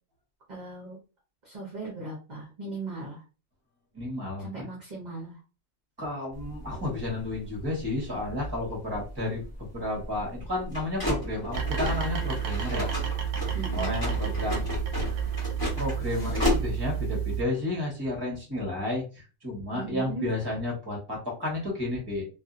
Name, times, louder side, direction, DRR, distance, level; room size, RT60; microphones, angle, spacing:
voice 1, 0.5-1.0 1.4-3.2 4.4-5.4 13.5-14.0 19.7-20.3, right 3 dB, 40° right, -4 dB, 0.8 m, -38 dB
voice 2, 3.9-4.7 6.0-9.4 9.7-12.9 13.7-14.8 15.8-22.3, left 2 dB, 20° right, -2 dB, 1.2 m, -32 dB
sound 1, 6.3-17.1, left 1 dB, 20° left, 1.2 m, -33 dB
sound 2, 11.5-17.4, right 9 dB, 80° right, 0.9 m, -31 dB
2.6 x 2.5 x 2.5 m, 0.33 s
omnidirectional pair, 1.3 m